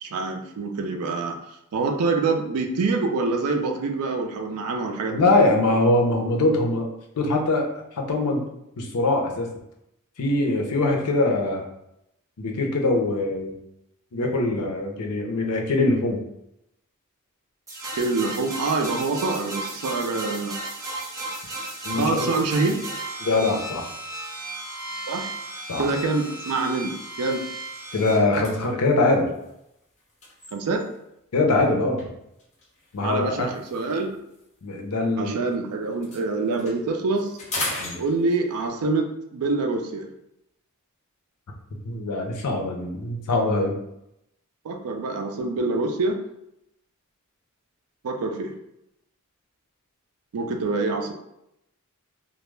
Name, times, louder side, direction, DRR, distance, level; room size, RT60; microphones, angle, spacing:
voice 1, 0.0-1.4 1.7-5.3 17.8-20.6 21.9-22.9 25.1-25.3 25.8-27.4 30.5-30.9 33.0-34.2 35.2-37.3 38.0-40.1 44.6-46.2 48.0-48.5 50.3-51.1, right 3 dB, 80° right, 5 dB, 0.4 m, -26 dB
voice 2, 5.1-6.9 7.2-7.7 8.0-8.5 8.8-9.5 10.2-11.6 12.4-13.6 14.1-16.2 21.8-22.3 23.2-23.9 25.7-25.8 27.9-29.3 31.3-32.1 32.9-33.5 34.6-35.4 37.8-38.0 41.8-43.8, left 2 dB, 85° left, 1 dB, 0.5 m, -22 dB
sound 1, 17.7-28.2, right 2 dB, 15° right, 0.4 m, -35 dB
sound 2, 27.2-31.1 32.0-35.5 35.8-38.7, left 2 dB, 30° left, 0.7 m, -39 dB
2.2 x 2.0 x 3.1 m, 0.82 s
head